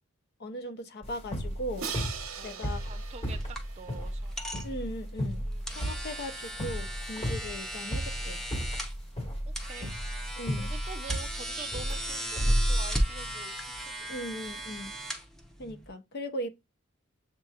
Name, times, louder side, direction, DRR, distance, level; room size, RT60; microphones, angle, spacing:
voice 1, 0.4-1.9 2.4-2.9 4.6-8.4 10.4-10.7 14.1-15.0 15.6-16.5, equal, 50° left, 0.6 m, -38 dB
sound 1, 1.0-13.3, equal, 30° left, 1.5 m, -33 dB
Crash cymbal, 1.8-4.7, right 6 dB, 85° right, 1.0 m, -41 dB
voice 2, 2.4-4.4 5.5-5.7 9.5-9.9 10.6-14.1, right 4 dB, 30° right, 0.4 m, -46 dB
sound 2, 2.8-15.9, equal, ahead, 0.7 m, -38 dB
7.3 x 2.9 x 2.3 m
head